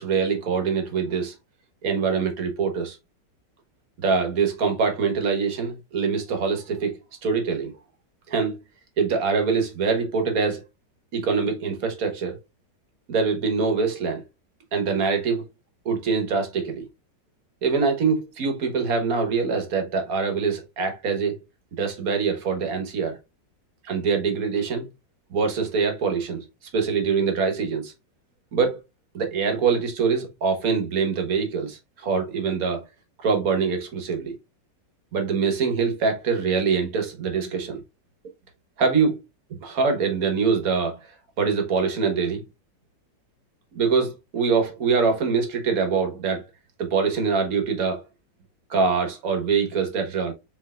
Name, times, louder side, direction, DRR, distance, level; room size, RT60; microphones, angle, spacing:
voice 1, 0.0-1.3 1.8-3.0 4.0-7.7 8.3-8.6 9.0-10.6 11.1-12.4 13.1-14.2 14.7-15.4 15.8-16.9 17.6-21.4 21.8-23.2 23.8-24.9 25.3-26.4 26.7-27.9 28.5-28.8 29.1-32.8 33.2-34.4 35.1-37.8 38.8-39.2 39.6-41.0 41.4-42.4 43.7-46.4 46.8-48.0 48.7-50.3, right 5 dB, 55° right, 1.6 m, -24 dB
4.5 x 4.4 x 2.4 m
omnidirectional pair, 1.9 m